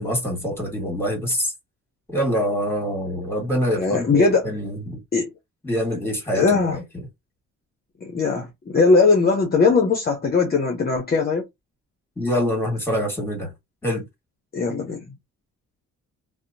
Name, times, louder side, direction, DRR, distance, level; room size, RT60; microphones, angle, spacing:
voice 1, 0.0-1.5 2.1-5.0 5.6-6.8 12.2-13.5 13.8-14.0, equal, 10° left, 1.6 m, -25 dB
voice 2, 3.7-4.5 5.1-5.3 6.3-6.8 8.0-11.4 14.5-15.0, left 4 dB, 30° left, 0.7 m, -19 dB
2.8 x 2.1 x 2.5 m
cardioid pair, 90°, 30 cm